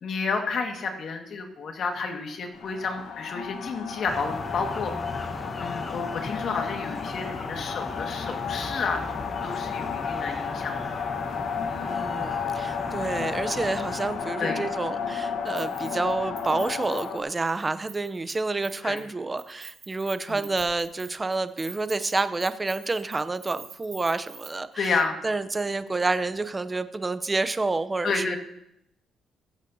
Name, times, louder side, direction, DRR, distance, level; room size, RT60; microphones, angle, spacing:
voice 1, 0.0-5.0 5.6-11.0 14.4-14.6 18.8-19.0 20.3-20.5 24.8-25.2 28.0-28.4, left 4 dB, 60° left, 4 dB, 1.8 m, -31 dB
sound 1, 2.5-17.2, left 6 dB, 80° left, 1.2 m, -33 dB
sound 2, 4.1-14.4, left 2 dB, 25° left, 0.9 m, -37 dB
voice 2, 11.8-24.9 25.2-28.4, right 3 dB, 25° right, 12 dB, 0.6 m, -29 dB
Keys jangling, 15.5-16.1 16.4-18.3 18.6-19.1 19.4-24.5 24.8-24.9, right 5 dB, 50° right, 3.2 m, -46 dB
21.5 x 8.1 x 2.8 m, 0.78 s
cardioid pair, 90°, 0 cm